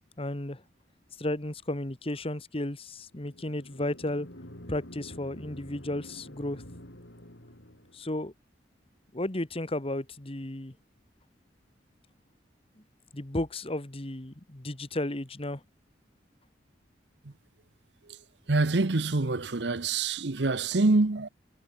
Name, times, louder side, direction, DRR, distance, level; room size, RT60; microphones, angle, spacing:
voice 1, 0.2-0.6 1.2-4.3 4.7-6.6 7.9-8.3 9.1-10.7 13.1-15.6, left 1 dB, 30° left, 1.5 m, -33 dB
sound 1, 3.1-8.1, left 1 dB, 80° left, 7.1 m, -48 dB
voice 2, 18.5-21.3, right 3 dB, 70° right, 1.0 m, -25 dB
head